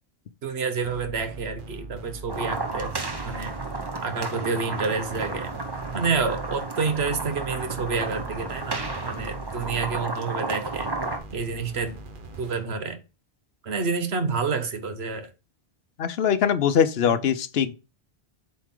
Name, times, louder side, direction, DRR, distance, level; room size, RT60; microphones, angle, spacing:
voice 1, 0.4-2.9 3.2-3.5 4.0-5.5 5.9-10.9 11.3-11.9 12.4-13.0 13.6-15.3 17.0-17.2, right 4 dB, 75° right, 1.3 m, -28 dB
sound 1, 0.8-4.1 5.0-10.1 10.6-12.9, right 2 dB, 55° right, 1.2 m, -41 dB
sound 2, 2.3-11.2, right 3 dB, 25° right, 0.8 m, -32 dB
voice 2, 16.0-17.7, left 8 dB, 70° left, 0.9 m, -22 dB
7.8 x 4.3 x 3.7 m
omnidirectional pair, 1.1 m